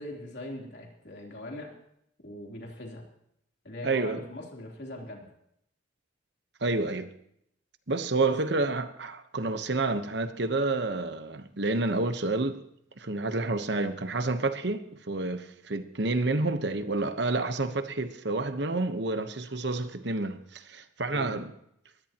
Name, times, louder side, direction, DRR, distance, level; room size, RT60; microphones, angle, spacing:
voice 1, 0.0-1.7 2.2-3.1 3.6-5.3 8.2-8.4 21.1-21.4, left 1 dB, 60° left, 3.5 m, -41 dB
voice 2, 3.8-4.2 6.6-7.1 7.9-12.6 13.0-21.5, right 2 dB, 60° right, 1.1 m, -29 dB
21.5 x 16.0 x 3.0 m
head